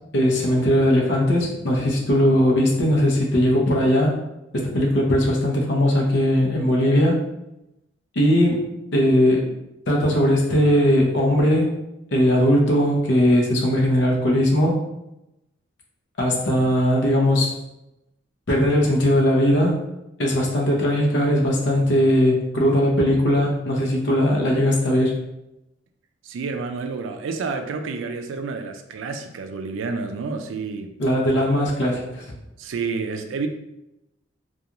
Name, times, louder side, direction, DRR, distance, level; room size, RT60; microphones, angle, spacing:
voice 1, 0.1-4.2 4.5-7.2 8.2-9.5 9.9-11.8 12.1-14.8 16.2-17.6 18.5-19.8 20.2-25.2 31.0-32.2, equal, 65° left, 0 dB, 0.6 m, -19 dB
voice 2, 26.2-30.9 32.6-33.5, right 4 dB, 80° right, 6 dB, 0.3 m, -29 dB
2.4 x 2.3 x 2.8 m, 0.89 s
head